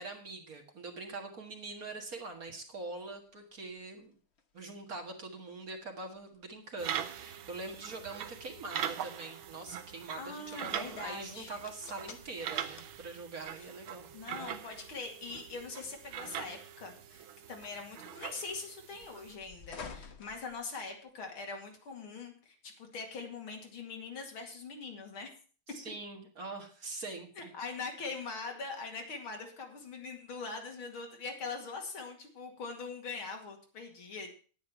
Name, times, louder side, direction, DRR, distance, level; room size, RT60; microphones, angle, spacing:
voice 1, 0.0-4.2 4.5-14.1 25.7-27.5, right 3 dB, 45° right, 3 dB, 2.0 m, -43 dB
sound 1, 1.8-21.2, left 5 dB, 40° left, 1.1 m, -56 dB
sound 2, 6.8-19.4, right 10 dB, 75° right, 1.7 m, -42 dB
voice 2, 10.2-11.6 13.6-13.7 14.1-25.3 27.4-34.3, left 4 dB, 75° left, 3 dB, 3.1 m, -42 dB
9.8 x 9.5 x 5.9 m, 0.40 s
omnidirectional pair, 2.3 m